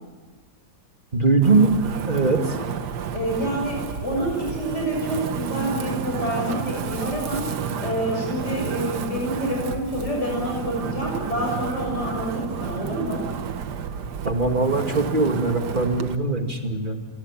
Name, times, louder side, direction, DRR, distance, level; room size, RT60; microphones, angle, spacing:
voice 1, 1.1-1.7 2.1-2.5 14.2-17.0, right 3 dB, 30° right, 4 dB, 1.9 m, -21 dB
Wind, 1.4-16.2, right 7 dB, 70° right, 1.7 m, -31 dB
voice 2, 3.1-7.4 7.8-13.3, equal, 40° left, -1 dB, 6.6 m, -27 dB
27.5 x 19.5 x 7.2 m, 1.4 s
omnidirectional pair, 1.9 m